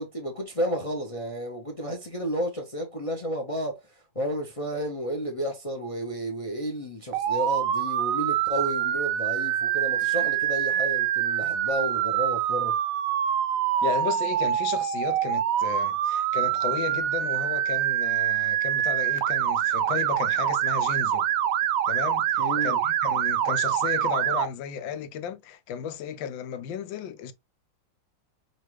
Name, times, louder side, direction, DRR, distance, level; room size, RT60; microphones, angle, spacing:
voice 1, 0.0-3.8 4.1-12.7 22.4-22.8, equal, 45° left, 0.4 m, -32 dB
Motor vehicle (road) / Siren, 7.1-24.5, right 11 dB, 80° right, 0.7 m, -25 dB
voice 2, 13.8-21.3 21.9-27.3, left 8 dB, 90° left, 1.4 m, -34 dB
5.5 x 2.4 x 3.1 m
omnidirectional pair, 2.0 m